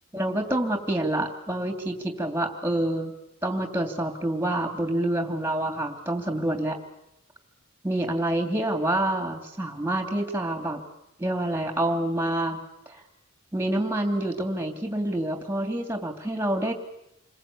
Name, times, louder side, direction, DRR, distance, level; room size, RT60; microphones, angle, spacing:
voice 1, 0.1-3.1 3.4-6.8 7.8-10.8 11.2-12.6 13.5-16.7, right 1 dB, 10° right, 6 dB, 2.9 m, -27 dB
28.5 x 21.5 x 8.5 m, 0.83 s
head